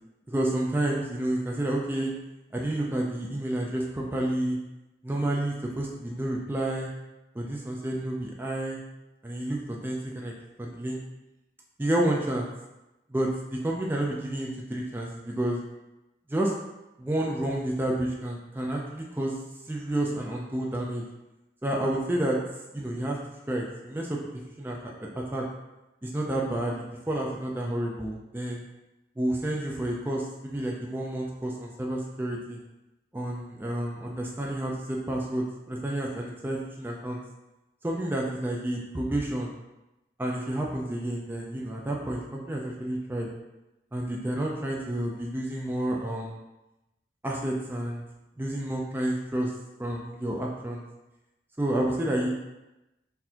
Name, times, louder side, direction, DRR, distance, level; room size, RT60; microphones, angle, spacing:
voice 1, 0.3-2.1 2.5-4.6 5.0-6.9 7.3-8.8 9.2-10.3 10.6-11.0 11.8-12.5 13.1-15.6 16.3-16.5 17.0-19.3 19.7-21.0 21.6-22.4 22.7-23.2 23.5-24.2 24.6-25.4 26.0-28.6 29.2-32.6 33.1-37.2 37.8-39.5 40.2-43.3 43.9-46.4 47.2-48.0 48.4-49.5 49.8-50.8 51.6-52.3, right 1 dB, 10° right, -2 dB, 0.4 m, -30 dB
4.0 x 2.6 x 2.8 m, 0.97 s
head